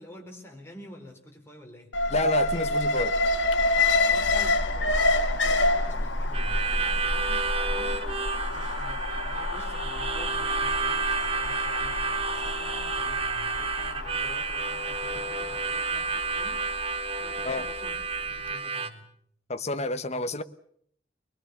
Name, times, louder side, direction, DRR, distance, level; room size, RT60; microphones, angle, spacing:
voice 1, 0.0-2.0 4.1-8.1 8.5-19.1, left 1 dB, 15° left, 4.4 m, -48 dB
Alarm, 1.9-18.0 18.4-18.5, left 2 dB, 85° left, 1.6 m, -28 dB
voice 2, 2.1-3.2 15.2-15.3 17.4-17.6 19.5-20.4, left 2 dB, 35° left, 1.1 m, -29 dB
Harmonica, 6.3-18.9, right 4 dB, 30° right, 1.6 m, -31 dB
23.5 x 21.5 x 7.1 m
head